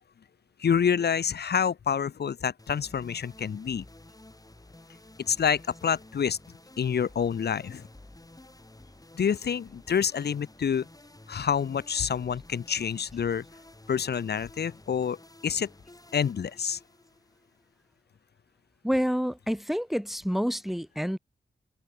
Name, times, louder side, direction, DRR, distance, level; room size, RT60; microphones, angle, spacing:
voice 1, 0.6-3.8 5.3-6.4 6.8-7.9 9.2-10.9 11.3-13.4 13.9-15.2 15.4-15.7 16.1-16.8, left 7 dB, 65° left, 0.8 m, -27 dB
background bit, 2.6-18.0, left 1 dB, 20° left, 5.1 m, -52 dB
voice 2, 18.8-21.2, equal, ahead, 1.2 m, -28 dB
cardioid pair, 50°, 18 cm